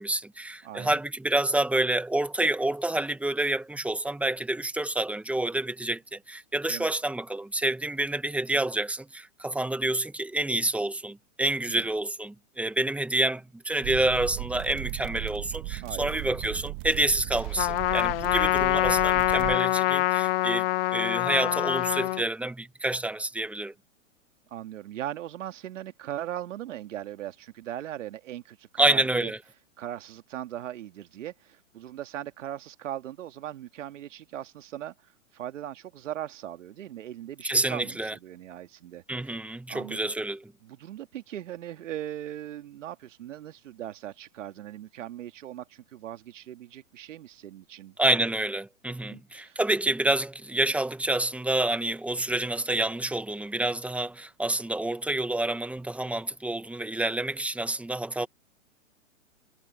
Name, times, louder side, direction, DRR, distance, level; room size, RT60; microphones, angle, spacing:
voice 1, 0.0-20.6 20.9-23.7 28.8-29.4 37.4-38.1 39.1-40.5 48.0-58.3, right 1 dB, 5° right, 1.6 m, -28 dB
voice 2, 0.6-1.0 6.7-6.9 11.7-11.9 15.8-16.2 21.4-21.7 24.5-29.3 29.8-34.9 35.3-39.3 39.7-40.1 40.6-48.3 49.1-49.6, right 12 dB, 70° right, 2.1 m, -39 dB
sound 1, 13.8-19.6, right 26 dB, 40° right, 1.7 m, -36 dB
Trumpet, 17.6-22.2, left 18 dB, 45° left, 0.8 m, -25 dB
hypercardioid pair, 130°, 39 cm